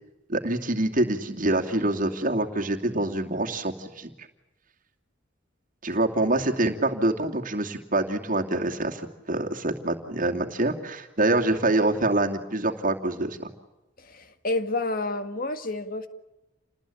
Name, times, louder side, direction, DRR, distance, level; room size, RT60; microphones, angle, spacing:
voice 1, 0.3-4.1 5.8-13.5, right 2 dB, 45° right, 3 dB, 2.6 m, -25 dB
voice 2, 14.0-16.1, left 2 dB, 50° left, 9 dB, 1.9 m, -29 dB
29.0 x 20.0 x 8.7 m, 1.0 s
head